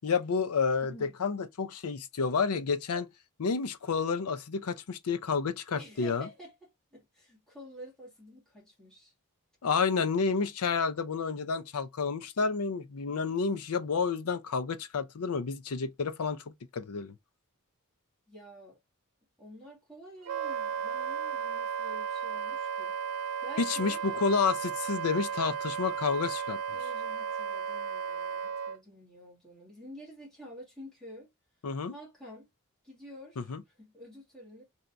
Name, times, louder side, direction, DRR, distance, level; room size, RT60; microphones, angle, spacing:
voice 1, 0.0-3.1 3.4-6.3 9.6-16.4 16.7-17.1 23.6-26.6 31.6-31.9 33.4-33.6, left 5 dB, 85° left, 0.5 m, -30 dB
voice 2, 0.8-1.1 5.7-9.1 18.3-18.8 19.4-23.0 23.4-24.0 26.7-31.3 31.9-32.5 32.8-33.5 33.8-34.6, equal, 5° left, 1.7 m, -49 dB
Wind instrument woodwind instrument, 20.3-28.8, right 7 dB, 80° right, 0.5 m, -34 dB
3.9 x 2.8 x 3.3 m
head